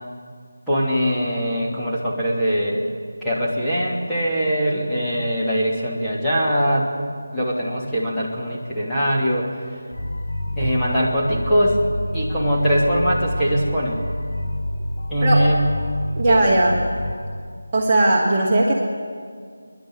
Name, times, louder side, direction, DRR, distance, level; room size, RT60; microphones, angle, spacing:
voice 1, 0.7-2.8 3.2-6.9 7.3-9.5 10.6-11.8 12.1-14.0 15.1-15.6 16.3-16.5, equal, 5° left, -10 dB, 2.9 m, -21 dB
sound 1, 9.9-17.1, left 1 dB, 50° left, 6.3 m, -28 dB
voice 2, 16.2-16.8 17.7-18.7, right 1 dB, 25° right, -4 dB, 2.1 m, -18 dB
28.5 x 11.0 x 9.7 m, 2.1 s
figure-of-eight pair, 165°, 0 cm